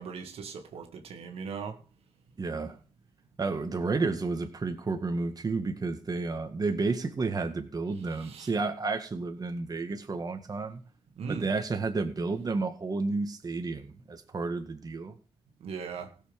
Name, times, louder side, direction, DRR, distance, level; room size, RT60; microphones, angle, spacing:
voice 1, 0.0-1.8 8.3-8.5 11.2-11.4 15.6-16.1, right 5 dB, 75° right, 1.9 m, -38 dB
voice 2, 2.4-2.8 3.4-10.8 11.3-15.2, right 3 dB, 40° right, 1.7 m, -31 dB
16.0 x 7.1 x 5.2 m
cardioid pair, 70°, 10 cm